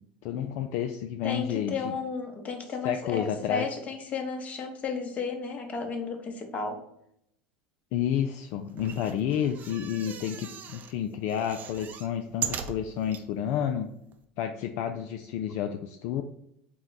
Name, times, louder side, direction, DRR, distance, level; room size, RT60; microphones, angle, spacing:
voice 1, 0.2-1.9 2.8-3.7 7.9-13.9 14.4-16.2, left 9 dB, 60° left, 5 dB, 0.3 m, -30 dB
voice 2, 1.2-6.8, left 4 dB, 35° left, 4 dB, 0.9 m, -33 dB
sound 1, 8.7-10.9 11.3-13.2 13.8-13.9 14.1-14.2, right 8 dB, 40° right, 0.5 m, -38 dB
4.6 x 2.2 x 3.9 m, 0.75 s
hypercardioid pair, 90°, 5 cm